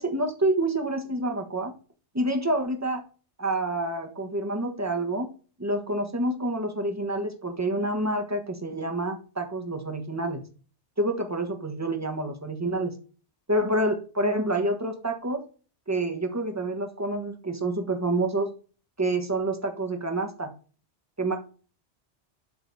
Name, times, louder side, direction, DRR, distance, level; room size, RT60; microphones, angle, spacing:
voice 1, 0.0-1.7 2.1-3.0 3.4-5.3 5.6-10.5 11.0-13.0 13.5-15.4 15.9-18.5 19.0-20.5 21.2-21.4, right 1 dB, 15° right, 5 dB, 1.4 m, -28 dB
8.3 x 4.0 x 5.3 m, 0.37 s
omnidirectional pair, 1.1 m